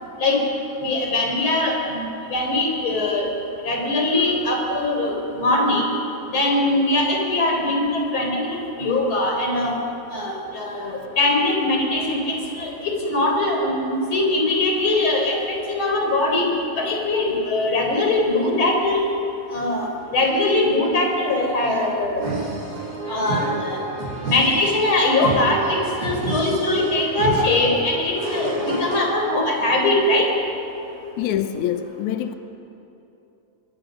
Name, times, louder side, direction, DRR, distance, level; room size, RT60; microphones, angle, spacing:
voice 1, 0.8-3.2 3.6-5.9 6.3-9.7 10.1-15.3 15.7-16.5 16.7-19.0 19.5-19.9 20.1-22.2 23.1-23.8 24.3-28.5 28.8-30.3, left 2 dB, 30° left, 4.5 m, -21 dB
sound 1, 22.2-29.0, right 2 dB, 70° right, 7.2 m, -29 dB
voice 2, 31.2-32.3, left 10 dB, 90° left, 1.6 m, -25 dB
24.5 x 22.5 x 6.5 m
omnidirectional pair, 4.6 m